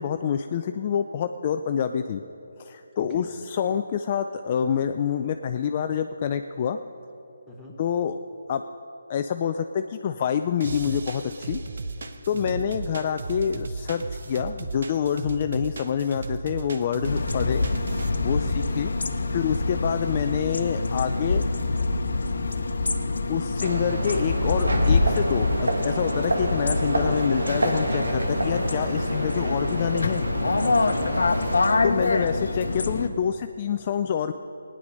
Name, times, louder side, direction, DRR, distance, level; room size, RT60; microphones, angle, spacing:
voice 1, 0.0-2.2 2.6-6.8 7.8-8.2 8.5-8.6 9.1-11.6 12.3-17.6 18.2-18.9 19.3-21.4 23.3-30.2 31.8-34.3, left 8 dB, 35° left, 7 dB, 0.4 m, -27 dB
voice 2, 3.0-3.4 7.5-7.8 12.3-12.7 18.4-18.8 30.5-31.3, left 2 dB, ahead, -5 dB, 1.6 m, -43 dB
sound 1, 10.6-18.1, right 3 dB, 60° right, 0.9 m, -35 dB
sound 2, 17.0-33.1, left 3 dB, 75° left, 0.9 m, -26 dB
sound 3, 23.6-31.6, right 1 dB, 90° right, 1.7 m, -28 dB
16.5 x 9.9 x 5.3 m, 3.0 s
figure-of-eight pair, 155°, 0 cm